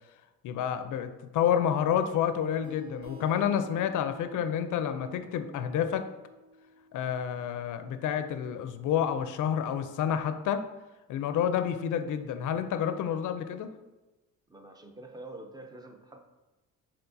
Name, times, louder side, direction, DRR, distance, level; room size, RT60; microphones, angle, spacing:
voice 1, 0.4-6.1 6.9-10.6 11.1-13.7, left 9 dB, 65° left, 9 dB, 0.5 m, -29 dB
sound 1, 2.6-8.0, equal, 55° right, 0.8 m, -51 dB
voice 2, 14.5-16.2, right 2 dB, 10° right, 5 dB, 0.5 m, -46 dB
4.5 x 3.6 x 2.6 m, 1.1 s
cardioid pair, 85°, 34 cm